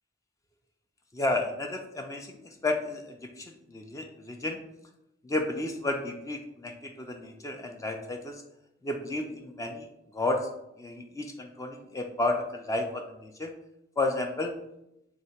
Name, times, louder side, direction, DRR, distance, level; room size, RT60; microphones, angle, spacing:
voice 1, 1.1-4.6 5.2-8.4 8.8-10.4 10.8-13.5 14.0-14.5, left 2 dB, 15° left, 4 dB, 0.3 m, -32 dB
3.5 x 2.8 x 4.3 m, 0.85 s
head